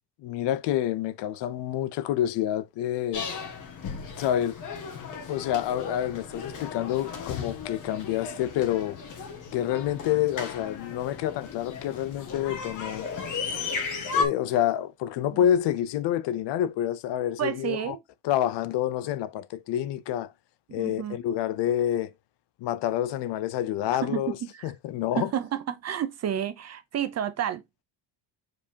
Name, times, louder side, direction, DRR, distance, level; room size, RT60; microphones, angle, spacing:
voice 1, 0.2-3.3 4.2-4.6 5.3-9.0 9.5-13.1 14.1-18.0 18.2-20.3 20.7-22.1 22.6-24.4 24.6-25.3, left 11 dB, 60° left, 0.6 m, -28 dB
sound 1, 3.1-14.2, left 5 dB, 40° left, 1.5 m, -35 dB
voice 2, 17.4-18.0 20.7-21.2 24.0-24.5 25.2-27.8, right 9 dB, 35° right, 0.6 m, -30 dB
7.2 x 4.7 x 2.8 m
cardioid pair, 175°, 48 cm